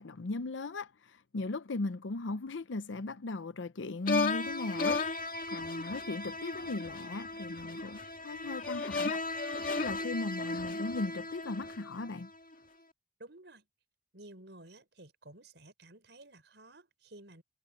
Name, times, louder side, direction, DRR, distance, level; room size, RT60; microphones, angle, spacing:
voice 1, 0.0-5.0 5.5-9.2 9.7-12.3, left 3 dB, 80° left, 0.7 m, -37 dB
sound 1, 4.1-12.3, left 3 dB, 45° left, 2.1 m, -35 dB
voice 2, 13.2-13.6 14.1-17.4, right 1 dB, 65° right, 4.8 m, -53 dB
head